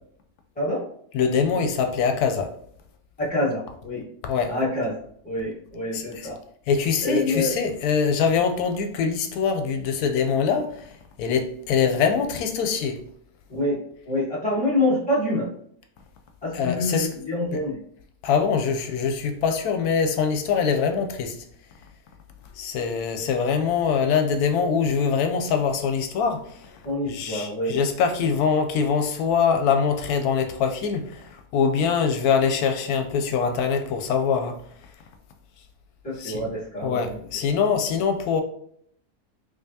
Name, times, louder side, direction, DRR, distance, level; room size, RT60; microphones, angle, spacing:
voice 1, 1.1-2.5 4.2-4.5 5.9-6.3 6.7-10.8 11.2-13.0 16.5-17.2 18.2-21.4 22.6-26.7 27.1-34.5 36.2-36.5 36.8-38.4, left 6 dB, 90° left, 1.1 m, -23 dB
voice 2, 3.2-4.1 4.5-6.4 7.0-7.5 13.5-13.8 14.0-15.5 16.4-17.8 26.8-27.8 36.0-37.2, left 1 dB, 5° left, 1.2 m, -26 dB
5.0 x 2.2 x 2.7 m
omnidirectional pair, 1.6 m